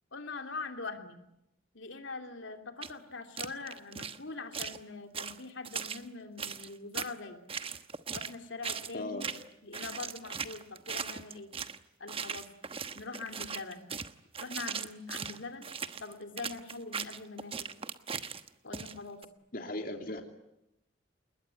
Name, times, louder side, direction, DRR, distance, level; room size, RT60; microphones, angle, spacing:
voice 1, 0.1-1.2 1.7-7.4 8.1-9.2 9.6-11.5 12.0-12.4 12.9-13.8 14.4-15.7 16.0-17.7 18.6-19.2, left 3 dB, 70° left, 5 dB, 3.0 m, -43 dB
sound 1, 2.8-2.9 3.4-4.2 4.5-4.8 5.1-6.0 6.4-7.1 7.5-8.4 8.6-8.9 9.2-9.5 9.7-11.8 12.1-19.3, right 6 dB, 30° right, 1.1 m, -38 dB
voice 2, 8.9-9.3 19.5-20.2, left 1 dB, 45° left, 4 dB, 3.0 m, -37 dB
28.0 x 21.0 x 10.0 m, 0.85 s
head